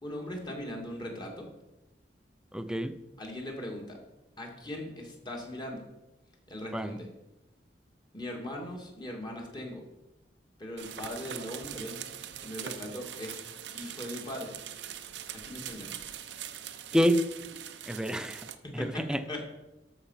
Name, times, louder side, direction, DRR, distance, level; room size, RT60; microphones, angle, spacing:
voice 1, 0.0-1.5 3.2-4.0 4.4-5.8 6.5-7.1 8.1-9.8 10.6-12.0 12.2-13.4 13.7-14.5 15.3-16.0 18.6-19.4, left 1 dB, 25° left, 0 dB, 2.4 m, -39 dB
voice 2, 2.5-2.9 6.7-6.9 16.9-17.3 17.9-18.5 18.7-19.2, equal, 5° right, 10 dB, 0.6 m, -27 dB
sound 1, 10.8-18.5, right 9 dB, 85° right, 0.8 m, -42 dB
13.5 x 6.1 x 5.7 m, 0.98 s
head